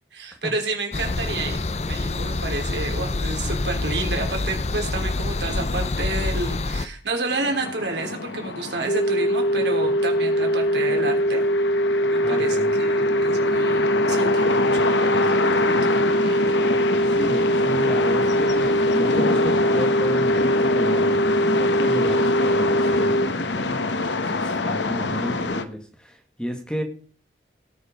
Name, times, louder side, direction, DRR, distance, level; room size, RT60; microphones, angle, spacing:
voice 1, 0.1-1.6 1.9-11.4 12.1-16.5 17.0-17.1, right 2 dB, 75° right, 2 dB, 3.3 m, -30 dB
sound 1, 0.9-6.9, left 2 dB, 35° left, 0.6 m, -26 dB
sound 2, 7.3-25.6, left 3 dB, 90° left, 1.1 m, -26 dB
sound 3, 8.9-23.3, equal, 75° left, 0.7 m, -22 dB
voice 2, 12.2-12.7 17.0-21.2 21.6-26.8, equal, 5° left, 4 dB, 1.7 m, -33 dB
17.5 x 6.4 x 5.1 m, 0.43 s
head